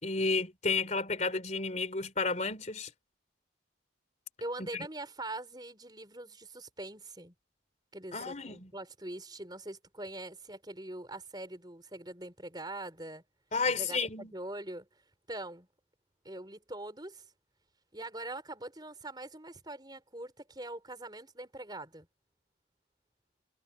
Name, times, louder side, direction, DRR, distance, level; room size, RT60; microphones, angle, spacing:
voice 1, 0.0-2.9 4.6-4.9 8.1-8.7 13.5-14.3, left 4 dB, 35° left, 3.8 m, -32 dB
voice 2, 4.4-7.3 7.9-13.2 13.6-14.9 15.3-15.7 16.2-17.3 17.9-22.1, right 2 dB, 20° right, 4.9 m, -43 dB
head